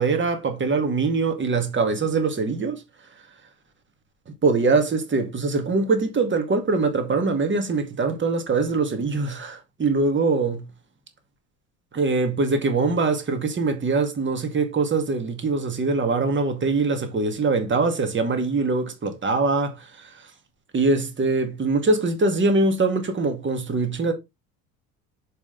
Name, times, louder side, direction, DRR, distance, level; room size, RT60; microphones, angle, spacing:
voice 1, 0.0-2.8 4.4-10.7 11.9-20.3 20.7-24.1, right 3 dB, 25° right, 2.1 m, -23 dB
6.8 x 5.1 x 3.9 m
figure-of-eight pair, 65°, 43 cm